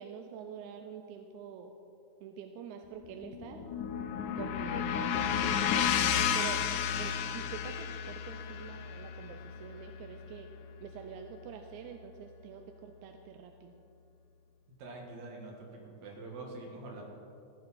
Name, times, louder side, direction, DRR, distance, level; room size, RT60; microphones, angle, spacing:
voice 1, 0.0-1.7 2.2-3.7 4.4-5.8 6.3-10.5 10.8-13.8, right 7 dB, 80° right, 5 dB, 1.9 m, -46 dB
sound 1, 3.0-11.3, left 8 dB, 80° left, 2.3 m, -33 dB
voice 2, 14.8-17.0, right 2 dB, 65° right, 0 dB, 2.9 m, -45 dB
15.0 x 10.5 x 4.2 m, 2.7 s
omnidirectional pair, 3.7 m